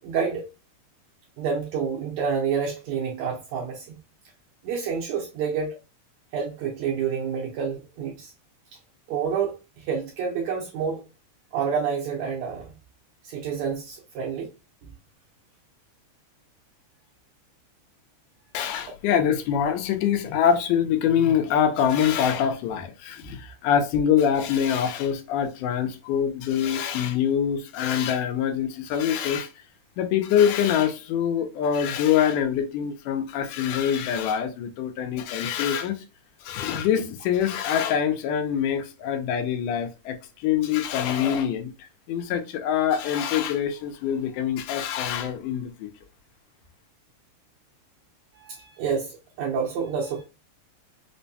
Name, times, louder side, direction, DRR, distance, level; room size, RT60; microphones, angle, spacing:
voice 1, 0.0-0.5 1.4-4.0 4.6-5.8 6.3-8.3 9.1-11.0 11.5-12.7 13.2-14.5 48.3-50.2, right 6 dB, 75° right, 1.8 m, -28 dB
voice 2, 18.5-29.5 30.0-36.0 36.4-45.9, left 8 dB, 85° left, 2.2 m, -24 dB
5.2 x 2.2 x 2.6 m
omnidirectional pair, 3.7 m